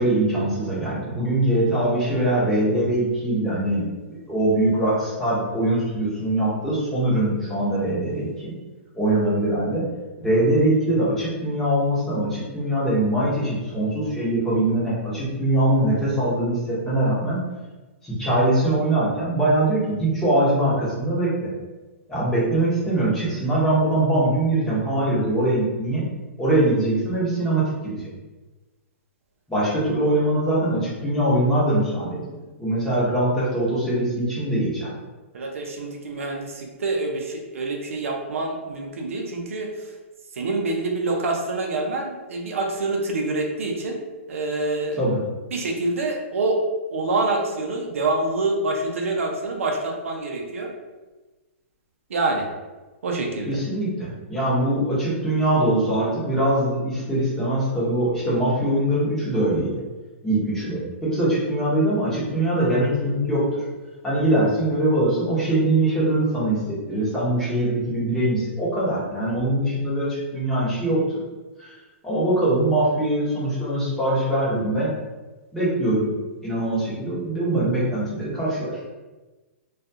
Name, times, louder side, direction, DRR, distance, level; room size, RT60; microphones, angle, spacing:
voice 1, 0.0-8.5 8.9-9.8 10.2-17.4 18.0-21.5 22.1-26.1 26.4-28.1 29.5-34.9 45.0-45.2 53.5-59.7 60.2-63.6 64.0-71.2 71.6-71.7 72.0-74.9 75.5-76.1 76.4-78.8, right 1 dB, 5° left, -9 dB, 0.9 m, -22 dB
voice 2, 35.3-39.7 40.4-44.0 44.3-45.0 45.5-46.6 46.9-50.7 52.1-52.5 53.0-53.6, right 2 dB, 80° right, 1 dB, 0.5 m, -26 dB
2.3 x 2.3 x 2.6 m, 1.2 s
hypercardioid pair, 145°, 7 cm